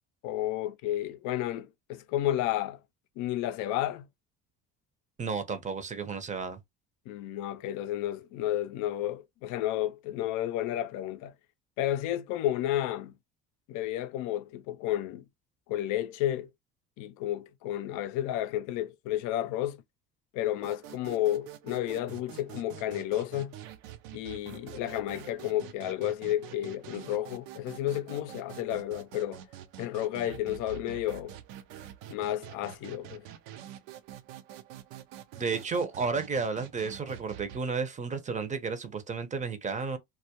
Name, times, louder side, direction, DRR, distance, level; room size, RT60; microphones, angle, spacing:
voice 1, 0.2-2.8 3.2-4.1 7.1-11.3 11.8-13.1 13.7-15.2 15.7-16.5 17.0-19.8 20.3-23.6 24.1-29.4 29.8-31.3 32.1-33.2, left 13 dB, 70° left, 0.5 m, -32 dB
voice 2, 5.2-6.6 35.4-40.0, right 5 dB, 25° right, 0.5 m, -32 dB
sound 1, 20.6-37.6, right 11 dB, 90° right, 0.5 m, -47 dB
2.3 x 2.1 x 2.8 m
supercardioid pair, 100°, 32 cm